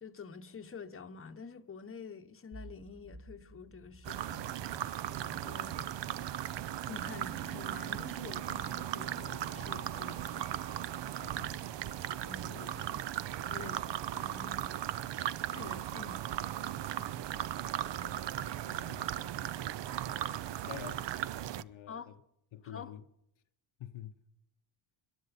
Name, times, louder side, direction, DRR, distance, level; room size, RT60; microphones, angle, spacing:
voice 1, 0.0-6.0 6.9-10.5 12.3-13.0 13.4-13.9 14.1-14.7 15.4-16.2 16.6-17.1 18.0-18.3 21.9-22.1 22.6-22.9, left 5 dB, 25° left, 0.9 m, -48 dB
sound 1, 2.5-9.4, right 1 dB, 40° right, 2.3 m, -55 dB
sound 2, 4.0-21.6, right 12 dB, 60° right, 0.6 m, -37 dB
sound 3, 4.2-20.8, right 1 dB, 15° right, 2.1 m, -58 dB
voice 2, 11.2-12.0 18.7-19.3 20.7-21.1 21.6-22.2 22.5-23.1 23.8-24.2, left 11 dB, 70° left, 0.8 m, -48 dB
21.5 x 11.5 x 4.1 m
cardioid pair, 60°, 49 cm